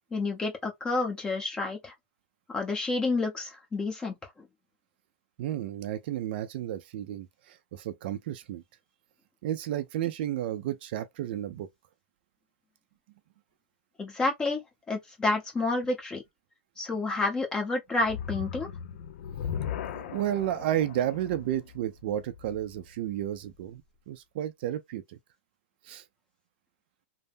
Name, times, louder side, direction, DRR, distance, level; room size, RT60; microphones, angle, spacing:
voice 1, 0.1-1.9 2.5-4.1 14.0-14.6 14.9-16.2 16.8-18.7, left 3 dB, 10° left, 0.9 m, -29 dB
voice 2, 5.4-8.6 9.4-11.7 19.9-23.8 24.1-25.2 25.8-26.0, right 12 dB, 55° right, 0.4 m, -32 dB
sound 1, 18.0-23.3, left 8 dB, 65° left, 0.5 m, -38 dB
3.3 x 2.0 x 2.5 m
hypercardioid pair, 145°, 7 cm